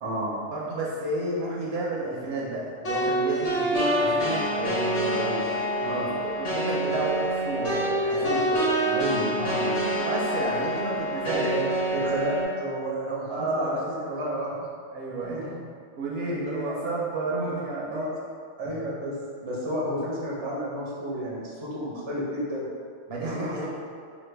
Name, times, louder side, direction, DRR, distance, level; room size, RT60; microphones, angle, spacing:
voice 1, 0.0-0.4 5.2-5.4 5.8-6.1 8.2-8.4 8.8-10.1 11.3-14.5 15.3-15.4 16.3-16.8 17.9-18.1 18.6-22.7 23.2-23.7, equal, 35° right, -6 dB, 0.5 m, -31 dB
voice 2, 0.5-5.3 5.7-8.7 10.0-11.5 13.3-14.4 14.9-15.5 16.0-18.1 18.6-18.7 23.1-23.7, right 2 dB, 65° right, -5 dB, 0.8 m, -31 dB
sound 1, 2.8-12.4, right 1 dB, 35° left, 0.7 m, -26 dB
3.1 x 2.3 x 3.2 m, 2.2 s
omnidirectional pair, 1.2 m